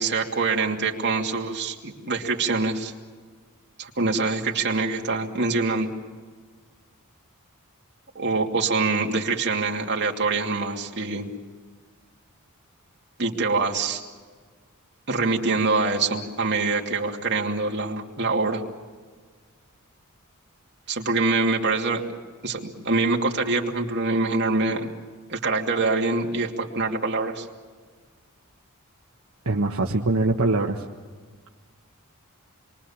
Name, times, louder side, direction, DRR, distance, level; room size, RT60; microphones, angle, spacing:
voice 1, 0.0-2.9 3.8-5.9 8.1-11.3 13.2-14.0 15.1-18.6 20.9-22.0 22.4-24.9 25.3-27.5, right 3 dB, 50° right, 0 dB, 2.8 m, -25 dB
voice 2, 29.4-30.8, right 2 dB, 70° right, 0 dB, 1.5 m, -23 dB
28.5 x 23.0 x 7.3 m, 1.5 s
head